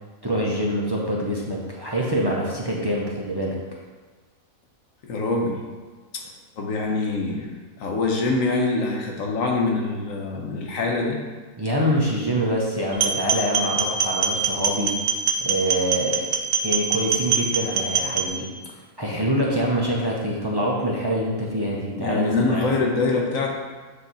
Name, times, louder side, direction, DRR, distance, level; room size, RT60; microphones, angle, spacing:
voice 1, 0.2-3.6 11.6-14.9 15.4-16.2 16.6-18.5 19.0-22.7, equal, 30° right, -4 dB, 0.5 m, -25 dB
voice 2, 5.0-5.6 6.1-6.2 6.6-7.5 7.8-11.2 21.9-23.5, left 3 dB, 70° left, 1 dB, 1.3 m, -24 dB
sound 1, 12.9-18.3, right 5 dB, 65° right, 0.9 m, -23 dB
8.3 x 2.9 x 4.0 m, 1.4 s
omnidirectional pair, 1.4 m